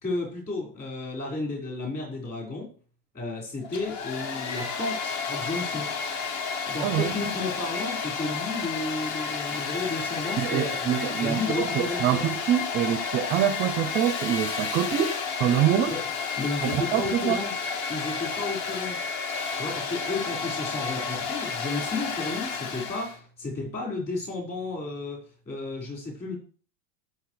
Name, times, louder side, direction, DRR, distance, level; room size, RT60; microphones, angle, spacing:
voice 1, 0.0-2.7 3.1-5.9 6.6-12.3 15.9-16.1 16.4-17.5 17.9-19.0 19.5-25.2 25.4-26.3, left 3 dB, 20° left, 4.8 m, -33 dB
Domestic sounds home sounds, 3.6-23.2, left 5 dB, 40° left, 1.2 m, -31 dB
voice 2, 10.4-15.9 16.6-17.4, right 10 dB, 25° right, 0.5 m, -25 dB
18.0 x 6.6 x 3.2 m
supercardioid pair, 165°, 44 cm